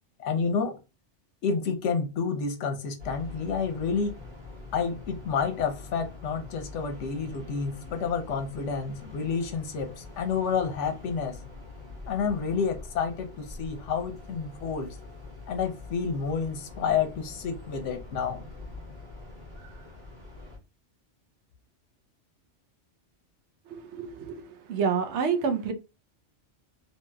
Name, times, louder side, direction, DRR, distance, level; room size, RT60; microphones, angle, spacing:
voice 1, 0.2-0.8 1.4-4.2 4.7-11.4 12.1-15.0 15.5-18.4, left 6 dB, 85° left, 6 dB, 1.0 m, -29 dB
sound 1, 3.0-20.6, left 3 dB, 45° right, 1.3 m, -44 dB
voice 2, 23.7-25.7, right 6 dB, 75° right, 7 dB, 0.9 m, -28 dB
2.8 x 2.8 x 2.2 m, 0.29 s
omnidirectional pair, 1.2 m